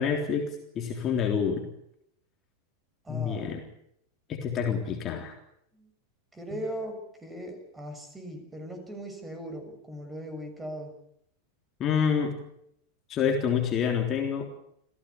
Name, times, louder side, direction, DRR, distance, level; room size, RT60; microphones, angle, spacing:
voice 1, 0.0-1.7 3.1-3.6 4.3-5.3 6.5-6.6 11.8-12.4 13.1-14.5, left 7 dB, 30° left, 3 dB, 3.6 m, -27 dB
voice 2, 3.0-3.5 5.7-5.9 6.3-10.9, equal, 10° right, 7 dB, 6.8 m, -39 dB
29.0 x 16.0 x 8.5 m, 0.74 s
figure-of-eight pair, 90°, 0 cm